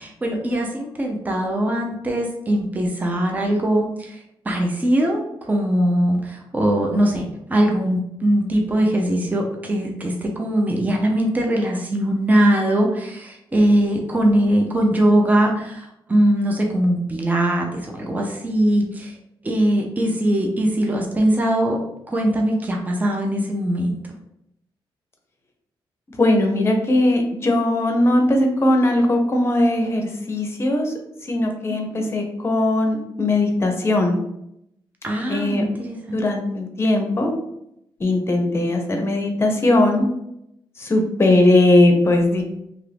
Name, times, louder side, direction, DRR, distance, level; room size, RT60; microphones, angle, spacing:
voice 1, 0.0-19.2 19.4-21.8 22.1-23.9 31.7-32.1 35.0-36.2, right 1 dB, 20° right, 1 dB, 0.5 m, -21 dB
voice 2, 26.1-30.9 31.2-34.2 35.3-35.6 36.1-37.3 38.0-40.1 40.8-42.4, left 1 dB, 30° left, 3 dB, 0.7 m, -19 dB
2.9 x 2.5 x 3.3 m, 0.79 s
cardioid pair, 105°, 9 cm